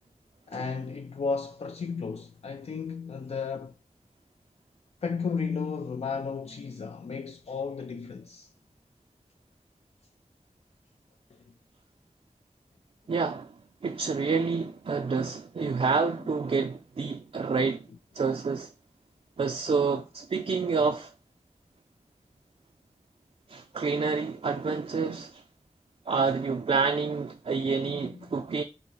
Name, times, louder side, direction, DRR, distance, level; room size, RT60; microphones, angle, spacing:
voice 1, 0.5-3.7 5.0-8.5 11.3-11.5 15.6-15.9 27.8-28.3, left 5 dB, 65° left, 0.4 m, -34 dB
voice 2, 13.1-13.5 13.8-17.9 18.1-18.7 19.4-21.1 23.5-25.4 26.1-28.6, right 4 dB, 60° right, 0.4 m, -28 dB
4.0 x 2.7 x 4.6 m
wide cardioid pair, 70°, 12 cm